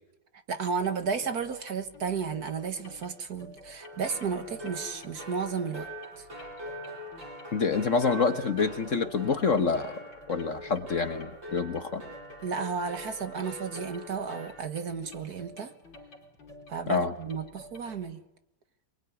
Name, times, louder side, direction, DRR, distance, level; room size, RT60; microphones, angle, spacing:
voice 1, 0.5-5.9 6.2-6.3 12.4-15.7 16.7-18.2, right 6 dB, 55° right, 9 dB, 1.9 m, -33 dB
sound 1, 0.7-18.1, left 1 dB, 85° left, 4.3 m, -51 dB
sound 2, 3.8-14.5, right 1 dB, 80° right, 8.4 m, -44 dB
voice 2, 7.5-12.0 16.9-17.1, left 5 dB, 45° left, 9 dB, 1.4 m, -27 dB
24.0 x 22.5 x 9.6 m, 0.89 s
omnidirectional pair, 2.0 m